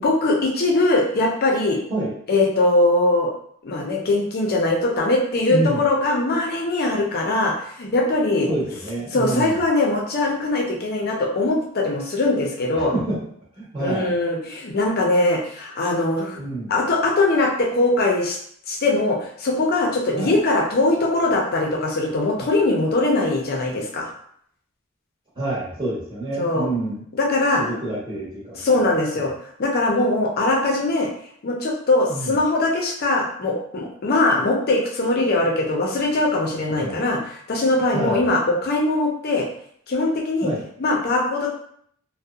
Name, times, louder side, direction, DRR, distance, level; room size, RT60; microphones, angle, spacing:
voice 1, 0.0-1.8 2.3-3.3 3.6-8.5 9.1-12.9 13.8-16.4 16.7-18.4 18.7-24.1 26.4-26.7 27.1-27.6 28.5-29.3 29.6-31.1 31.4-39.5 39.9-40.5 40.8-41.5, left 2 dB, 50° left, 0 dB, 0.5 m, -21 dB
voice 2, 5.5-5.8 8.5-9.6 12.7-13.2 13.6-14.1 16.4-16.7 20.1-20.4 25.4-27.0 27.5-28.6 29.1-29.3 32.1-32.3 36.7-37.0 37.9-38.2 40.4-40.6, right 2 dB, 20° right, -9 dB, 0.9 m, -27 dB
2.7 x 2.1 x 2.3 m, 0.65 s
head